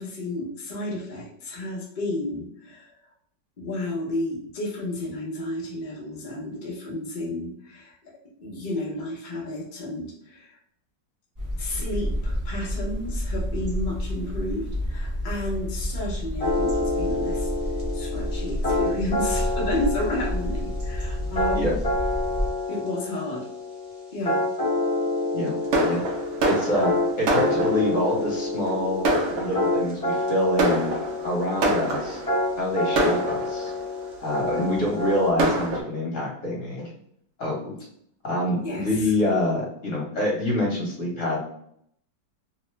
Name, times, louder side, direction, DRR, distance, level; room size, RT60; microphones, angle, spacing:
voice 1, 0.0-2.9 3.6-8.0 8.4-10.6 11.6-17.5 17.9-21.7 22.7-23.5 24.1-24.4 26.7-26.8 38.6-39.1, left 1 dB, 70° left, -4 dB, 0.4 m, -32 dB
Little rain birds et siren, 11.4-22.5, equal, 40° right, 0.4 m, -30 dB
sound 1, 16.4-35.3, left 2 dB, 30° left, 0.7 m, -28 dB
Fireworks, 25.7-28.1 28.7-28.8 29.0-29.9 30.6-32.4 33.0-33.9 34.6-34.7 35.0-35.1 35.4-35.8, right 1 dB, 75° right, 0.7 m, -25 dB
voice 2, 26.4-26.9 27.2-29.1 29.3-30.9 31.2-32.2 32.6-33.7 34.2-36.9 37.4-37.7 38.2-41.4, left 1 dB, 50° left, -3 dB, 1.2 m, -26 dB
3.0 x 2.0 x 3.1 m, 0.68 s
omnidirectional pair, 2.0 m